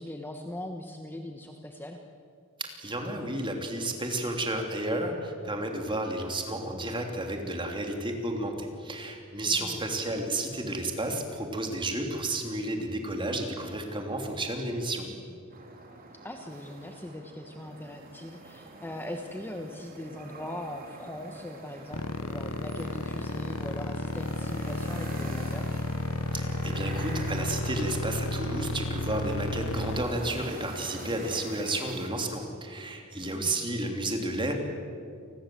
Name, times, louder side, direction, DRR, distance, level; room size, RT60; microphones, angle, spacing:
voice 1, 0.0-2.0 9.4-9.8 15.1-15.2 16.2-25.7 33.2-33.6, left 1 dB, 10° left, 4 dB, 1.2 m, -40 dB
voice 2, 2.6-15.1 26.3-34.5, right 1 dB, 25° right, 3 dB, 3.1 m, -32 dB
sound 1, 15.5-32.1, right 2 dB, 40° right, 3.5 m, -45 dB
sound 2, 21.9-30.0, left 2 dB, 75° left, 0.9 m, -33 dB
28.5 x 20.5 x 7.8 m, 2.4 s
head